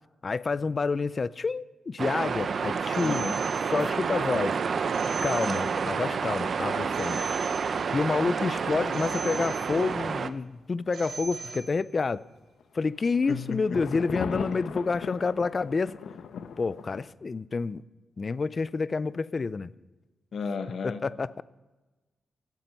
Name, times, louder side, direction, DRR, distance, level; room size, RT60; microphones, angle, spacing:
voice 1, 0.2-3.3 3.7-4.6 5.2-7.2 7.9-12.2 12.7-16.0 16.6-17.8 18.2-19.7 20.8-21.4, left 4 dB, 35° left, 0.4 m, -28 dB
sound 1, 2.0-10.3, right 5 dB, 50° right, 0.6 m, -29 dB
Telephone, 2.9-4.2 4.9-6.2 6.9-8.2 8.9-10.2 10.9-12.2, right 4 dB, 75° right, 1.8 m, -41 dB
sound 2, 3.0-4.0 4.3-8.9 12.6-17.1, left 6 dB, 85° left, 0.9 m, -42 dB
voice 2, 3.0-3.4 13.3-14.4 20.3-21.0, left 5 dB, 60° left, 1.1 m, -34 dB
16.5 x 12.0 x 5.4 m
wide cardioid pair, 145°, 0 cm